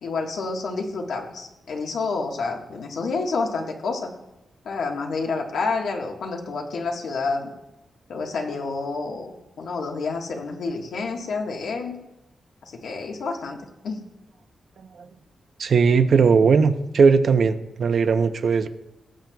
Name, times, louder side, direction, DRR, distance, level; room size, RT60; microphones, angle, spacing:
voice 1, 0.0-4.1 4.6-7.5 8.1-12.0 12.8-13.6 13.8-14.0, left 4 dB, 90° left, 1 dB, 1.4 m, -29 dB
voice 2, 15.6-18.7, right 5 dB, 65° right, 9 dB, 0.7 m, -18 dB
19.5 x 7.5 x 2.3 m, 0.93 s
wide cardioid pair, 115°, 0 cm